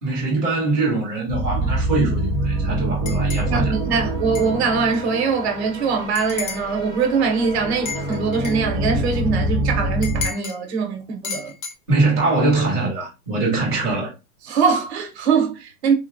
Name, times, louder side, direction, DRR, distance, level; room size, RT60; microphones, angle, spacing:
voice 1, 0.0-3.7 11.9-14.1, right 3 dB, 5° left, 0.4 m, -22 dB
sound 1, 1.3-10.3, right 1 dB, 25° left, 0.8 m, -25 dB
sound 2, 3.1-3.5 4.3-4.5 4.9-5.0 6.2-6.7 7.9-8.6 10.0-10.6 11.2-11.7, left 6 dB, 55° left, 0.8 m, -32 dB
voice 2, 3.5-11.5 14.4-15.9, right 5 dB, 45° right, 0.7 m, -22 dB
3.7 x 2.0 x 2.5 m
supercardioid pair, 180°, 45 cm